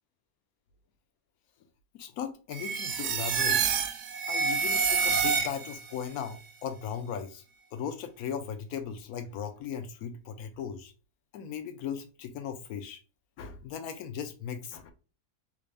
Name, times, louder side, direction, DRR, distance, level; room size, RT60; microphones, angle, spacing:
voice 1, 1.9-3.6 4.3-7.4 7.7-10.9 11.3-13.0 13.4-14.9, left 7 dB, 75° left, 8 dB, 1.0 m, -37 dB
sound 1, 2.5-5.9, right 6 dB, 85° right, 1.1 m, -28 dB
3.5 x 2.5 x 3.2 m, 0.34 s
omnidirectional pair, 1.6 m